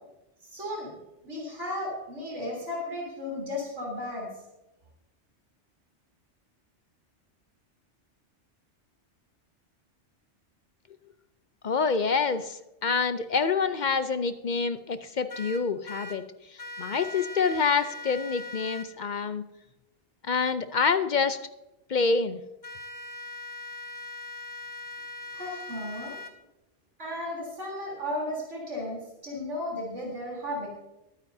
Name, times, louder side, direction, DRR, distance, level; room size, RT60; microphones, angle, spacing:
voice 1, 0.5-1.0 1.2-4.3 25.3-26.2 27.0-30.7, left 1 dB, 90° right, -3 dB, 3.8 m, -34 dB
voice 2, 11.6-16.2 16.5-19.4 20.3-21.4 21.9-22.4, left 5 dB, 50° left, 11 dB, 0.6 m, -27 dB
sound 1, 15.3-16.2 16.6-18.9 22.6-26.3, left 2 dB, 15° left, 1.2 m, -40 dB
21.5 x 9.4 x 2.7 m, 0.93 s
omnidirectional pair, 1.2 m